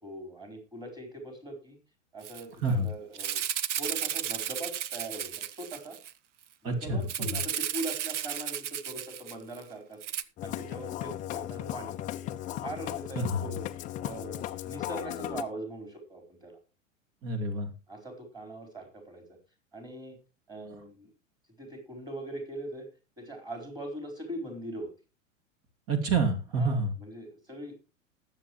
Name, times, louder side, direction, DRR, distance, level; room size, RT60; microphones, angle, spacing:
voice 1, 0.0-1.8 2.1-3.4 3.8-6.0 6.6-10.0 10.4-12.0 12.6-13.6 14.0-16.6 17.9-19.2 19.7-20.2 20.5-21.1 21.6-22.9 23.2-24.9 26.6-27.8, right 1 dB, 10° right, 4 dB, 4.2 m, -41 dB
Rattle (instrument), 2.2-2.4 2.7-2.8 3.1-6.1 7.1-9.6 10.0-10.2, right 10 dB, 60° right, 0.8 m, -34 dB
voice 2, 6.6-7.0 13.2-13.4 17.2-17.7 25.9-26.9, right 3 dB, 35° right, 8 dB, 2.6 m, -28 dB
Musical instrument, 10.4-15.4, left 13 dB, 20° left, 0.6 m, -36 dB
20.0 x 7.4 x 3.1 m, 0.31 s
figure-of-eight pair, 95°, 40 cm